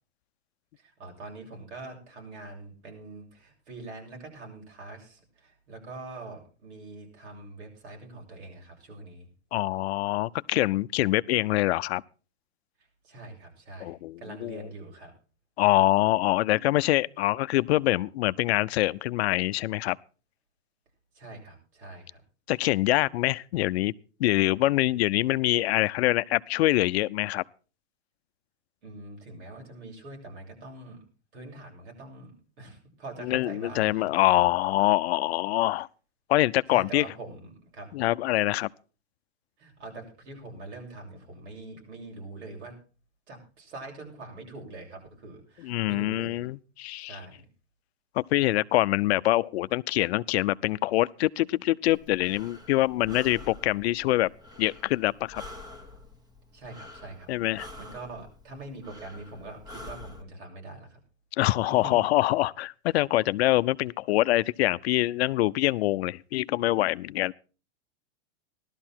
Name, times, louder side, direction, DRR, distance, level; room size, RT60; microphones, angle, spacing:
voice 1, 0.8-9.3 13.0-15.1 21.1-22.2 28.8-31.0 31.3-34.1 35.3-35.4 36.7-37.9 39.6-42.7 43.3-46.4 47.0-47.5 56.5-57.3 57.8-61.0 61.7-62.0, right 2 dB, 80° right, 7.4 m, -43 dB
voice 2, 9.5-12.0 13.8-14.6 15.6-20.0 22.5-23.9 24.2-27.4 33.2-35.9 36.3-37.0 37.9-38.7 45.6-47.2 48.1-54.3 54.6-55.4 57.3-57.7 61.4-67.3, left 17 dB, 65° left, 0.6 m, -25 dB
Breathing, 51.9-60.2, left 2 dB, 10° right, 1.5 m, -47 dB
16.0 x 12.5 x 4.5 m
supercardioid pair, 155°, 34 cm